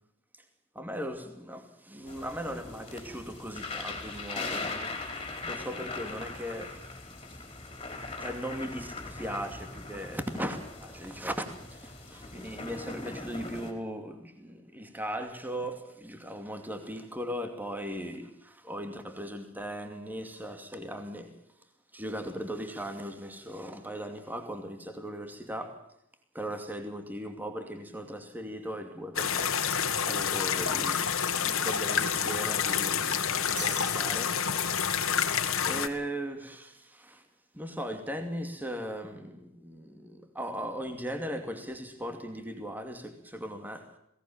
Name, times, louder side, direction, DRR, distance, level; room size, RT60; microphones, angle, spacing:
voice 1, 0.7-4.9 5.4-6.9 8.0-21.3 21.9-25.8 26.3-29.8 30.1-34.4 34.8-37.2 37.5-43.9, equal, 10° right, 2.5 m, -38 dB
sound 1, 2.1-13.7, left 3 dB, 25° left, 4.6 m, -40 dB
sound 2, 29.2-35.9, left 7 dB, 75° left, 2.0 m, -28 dB
sound 3, 33.6-35.1, right 3 dB, 55° right, 5.3 m, -43 dB
22.0 x 18.0 x 7.3 m
head